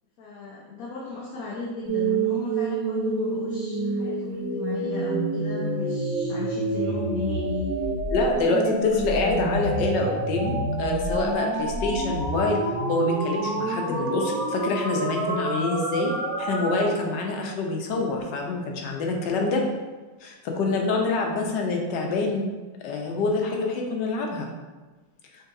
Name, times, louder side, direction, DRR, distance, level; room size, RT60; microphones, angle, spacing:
voice 1, 0.2-7.7 8.3-8.6 20.6-20.7, left 4 dB, 60° left, -5 dB, 1.1 m, -35 dB
sound 1, 1.8-16.9, right 2 dB, 80° right, 2.4 m, -28 dB
voice 2, 8.1-12.6 12.9-16.1 16.4-19.6 20.2-22.5 22.8-24.5, left 3 dB, 80° left, 1 dB, 1.3 m, -26 dB
5.3 x 3.9 x 2.6 m, 1.2 s
omnidirectional pair, 1.9 m